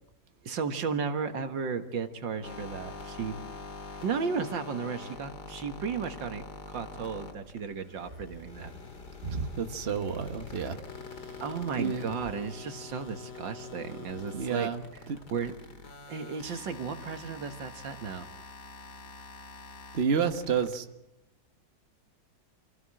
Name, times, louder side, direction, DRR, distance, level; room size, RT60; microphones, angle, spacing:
voice 1, 0.4-3.4 4.0-8.7 11.4-14.7 15.1-15.6 16.1-18.3, right 6 dB, 80° right, 7 dB, 2.3 m, -34 dB
sound 1, 2.4-20.8, left 3 dB, 60° left, 2.6 m, -45 dB
voice 2, 9.2-10.8 11.8-12.1 14.3-14.8 19.9-20.8, right 6 dB, 35° right, 6 dB, 1.5 m, -29 dB
27.0 x 16.5 x 7.7 m, 0.98 s
omnidirectional pair, 2.0 m